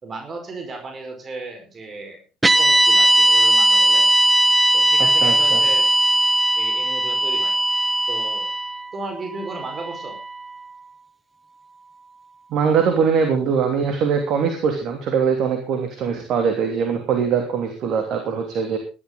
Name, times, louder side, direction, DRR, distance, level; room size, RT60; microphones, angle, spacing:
voice 1, 0.0-2.2 2.6-4.1 4.7-5.9 6.6-7.5 8.1-8.5 8.9-10.2, right 3 dB, 35° right, 4 dB, 5.0 m, -35 dB
sound 1, 2.4-10.7, right 1 dB, 15° right, 1.3 m, -18 dB
voice 2, 5.0-5.6 12.5-18.8, right 6 dB, 55° right, 4 dB, 3.0 m, -22 dB
17.5 x 12.5 x 4.0 m, 0.33 s
figure-of-eight pair, 60°, 0 cm